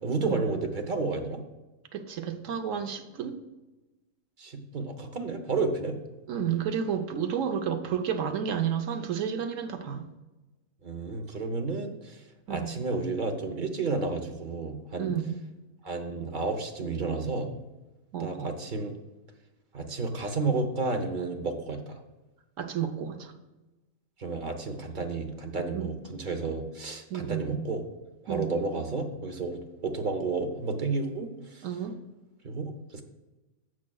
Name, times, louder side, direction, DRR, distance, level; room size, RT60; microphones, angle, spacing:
voice 1, 0.0-1.4 4.4-6.0 10.8-12.2 12.5-15.1 15.8-17.5 18.2-18.9 19.7-22.0 24.2-27.8 28.2-31.7 32.4-33.0, right 3 dB, 40° right, 5 dB, 0.9 m, -31 dB
voice 2, 1.9-3.4 6.3-10.1 12.5-12.7 15.0-15.4 18.1-18.5 22.6-23.3 25.7-26.0 27.1-27.6 28.3-28.5 31.6-32.0, right 8 dB, 70° right, 7 dB, 1.1 m, -31 dB
12.5 x 7.3 x 2.3 m, 1.1 s
omnidirectional pair, 1.5 m